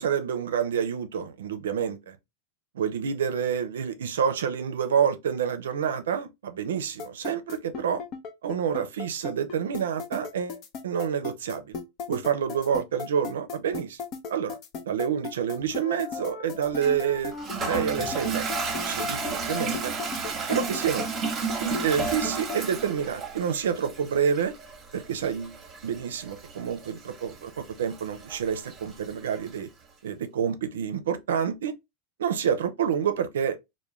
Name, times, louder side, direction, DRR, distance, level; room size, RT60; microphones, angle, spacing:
voice 1, 0.0-2.2 2.8-8.0 8.4-11.8 12.1-14.0 14.3-14.6 14.9-17.4 17.6-19.9 20.5-21.0 21.6-24.5 24.9-25.6 25.8-29.7 30.0-31.7 32.2-33.6, right 7 dB, 80° right, 0.5 m, -28 dB
sound 1, 7.0-22.6, left 6 dB, 45° left, 0.6 m, -36 dB
Toilet flush, 16.8-29.6, right 5 dB, 30° right, 0.8 m, -34 dB
2.3 x 2.1 x 3.0 m
hypercardioid pair, 105°, 0 cm